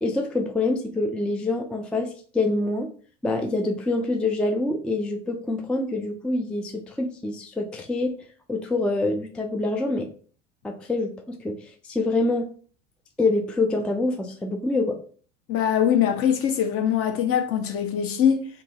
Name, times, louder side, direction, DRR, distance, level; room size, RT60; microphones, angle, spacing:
voice 1, 0.0-2.9 3.2-8.1 8.5-10.1 10.6-11.6 11.8-12.5 13.2-15.0, left 2 dB, 5° left, 0.3 m, -26 dB
voice 2, 15.5-18.5, left 9 dB, 40° left, 0.7 m, -22 dB
2.7 x 2.7 x 3.9 m
hypercardioid pair, 70°, 35 cm